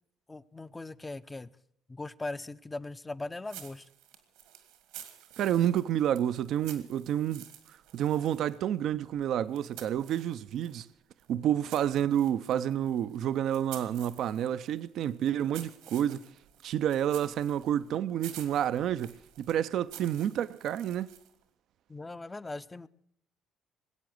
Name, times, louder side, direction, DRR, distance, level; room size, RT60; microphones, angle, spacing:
voice 1, 0.3-1.5 1.9-3.8 21.9-22.9, left 2 dB, 20° left, 0.6 m, -39 dB
sound 1, 3.4-10.8 11.2-21.4, right 11 dB, 85° right, 1.8 m, -51 dB
voice 2, 5.4-7.5 7.9-10.9 11.3-16.3 16.6-21.1, right 10 dB, 65° right, 0.5 m, -29 dB
20.0 x 8.4 x 7.8 m
supercardioid pair, 75°, 0 cm